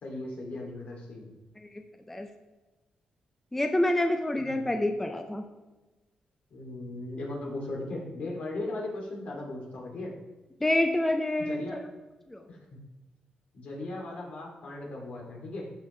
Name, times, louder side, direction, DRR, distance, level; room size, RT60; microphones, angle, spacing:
voice 1, 0.0-1.3 4.4-4.7 6.5-10.2 11.4-11.9 12.5-12.8 13.5-15.7, left 2 dB, 65° left, -2 dB, 2.7 m, -38 dB
voice 2, 3.5-5.4 10.6-11.8 12.3-12.4, left 1 dB, 10° left, 5 dB, 0.6 m, -27 dB
14.5 x 5.4 x 3.3 m, 1.2 s
cardioid pair, 110°, 3 cm